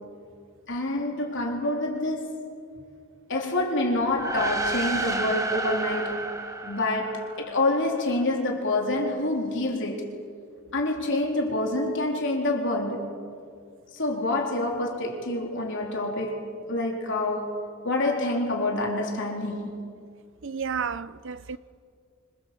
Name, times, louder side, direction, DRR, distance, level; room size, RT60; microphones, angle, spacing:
voice 1, 0.7-2.6 3.3-6.3 6.6-10.2 10.7-13.1 13.9-19.8, left 2 dB, 55° left, 3.9 m, -27 dB
sound 1, 4.0-7.7, right 2 dB, 15° right, 1.6 m, -31 dB
voice 2, 20.4-21.6, right 6 dB, 60° right, 0.7 m, -31 dB
28.0 x 26.0 x 7.7 m
head